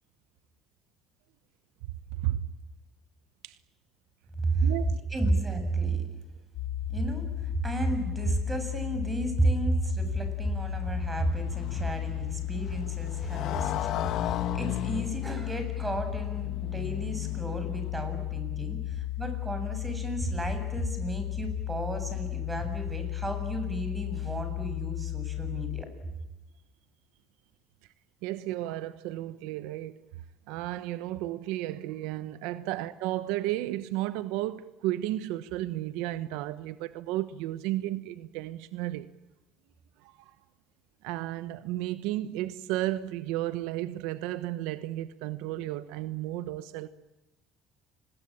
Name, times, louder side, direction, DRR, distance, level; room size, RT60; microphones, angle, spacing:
voice 1, 2.1-2.5 3.4-3.6 4.6-5.0 28.2-30.0 30.5-39.1 40.0-40.3 41.0-46.9, right 15 dB, 90° right, 1.1 m, -33 dB
voice 2, 5.1-6.0 6.9-25.9, right 2 dB, 15° right, 7.5 m, -32 dB
sound 1, 6.5-25.8, left 18 dB, 90° left, 1.8 m, -34 dB
Motorcycle, 10.1-18.3, left 10 dB, 65° left, 2.0 m, -37 dB
29.5 x 21.0 x 8.8 m
cardioid pair, 105°, 0 cm